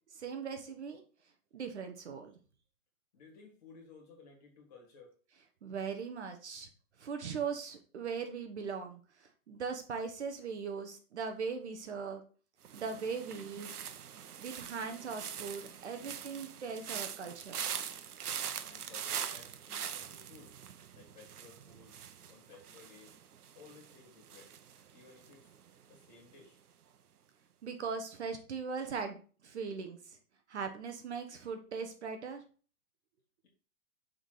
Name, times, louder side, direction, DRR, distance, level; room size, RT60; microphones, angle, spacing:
voice 1, 0.1-1.0 1.5-2.3 5.6-6.7 7.0-12.2 12.7-13.7 14.4-17.7 27.6-30.2 30.5-32.4, right 5 dB, 50° right, 6 dB, 1.0 m, -39 dB
voice 2, 3.1-5.1 18.7-20.5 20.9-23.1 23.6-24.5 24.9-25.5 25.9-26.6, left 4 dB, 25° left, 0 dB, 2.1 m, -57 dB
sound 1, 12.6-25.7 25.9-26.4, right 8 dB, 90° right, 0.9 m, -43 dB
6.3 x 3.9 x 4.7 m, 0.38 s
hypercardioid pair, 170°, 44 cm